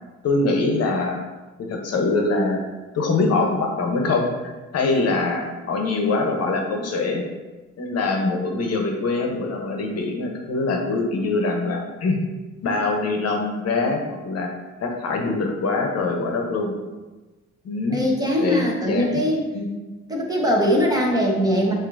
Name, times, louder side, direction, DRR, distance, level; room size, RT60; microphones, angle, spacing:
voice 1, 0.2-1.2 1.6-2.6 2.9-7.2 7.8-12.2 12.6-14.5 14.8-16.8 17.6-18.0 18.4-19.1 19.5-19.7, left 3 dB, 55° left, 2 dB, 0.9 m, -23 dB
voice 2, 17.9-19.5 20.1-21.7, equal, 10° right, -2 dB, 1.1 m, -21 dB
7.0 x 2.7 x 2.6 m, 1.2 s
cardioid pair, 90°, 30 cm